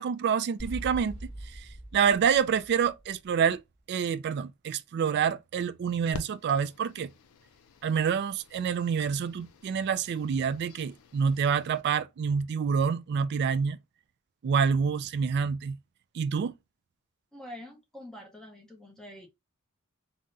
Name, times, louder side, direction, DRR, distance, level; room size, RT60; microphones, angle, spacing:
voice 1, 0.0-1.6 1.9-3.6 3.9-7.1 7.8-13.8 14.4-15.8 16.1-16.5, right 6 dB, 55° right, 0.3 m, -27 dB
sound 1, 0.6-3.5, right 1 dB, 35° left, 1.8 m, -42 dB
sound 2, 6.1-11.8, left 4 dB, 85° left, 0.5 m, -49 dB
voice 2, 17.3-19.3, left 1 dB, 5° left, 0.7 m, -46 dB
3.6 x 2.0 x 2.6 m
head